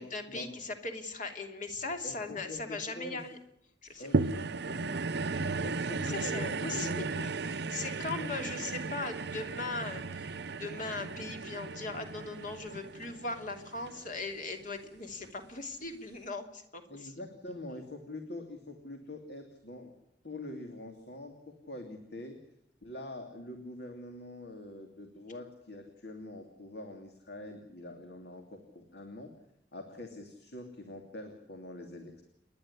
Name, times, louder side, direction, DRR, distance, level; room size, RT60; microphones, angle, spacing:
voice 1, 0.0-3.4 3.8-4.1 6.0-17.1, left 3 dB, 45° left, 5 dB, 3.0 m, -39 dB
voice 2, 2.0-3.2 4.0-7.0 8.1-8.5 16.9-19.9 20.2-22.4 22.8-29.3 29.7-32.2, left 1 dB, 60° left, 4 dB, 2.9 m, -45 dB
sound 1, 4.1-14.6 15.2-15.3, right 3 dB, 65° right, 0.8 m, -35 dB
29.5 x 11.0 x 9.9 m, 0.79 s
head